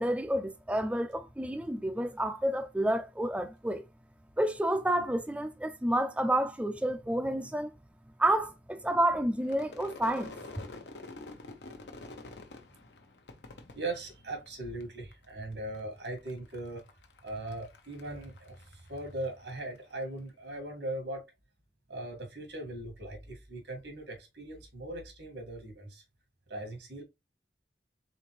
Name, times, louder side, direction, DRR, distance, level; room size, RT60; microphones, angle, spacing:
voice 1, 0.0-3.8 4.4-7.7 8.2-10.3, right 1 dB, 5° right, 0.4 m, -29 dB
Crowd / Fireworks, 9.4-14.8 15.1-15.8 16.0-19.6, left 2 dB, 80° left, 0.9 m, -48 dB
voice 2, 13.7-16.9 17.2-21.3 21.9-26.0 26.5-27.0, right 2 dB, 85° right, 1.9 m, -39 dB
4.2 x 3.8 x 3.2 m
head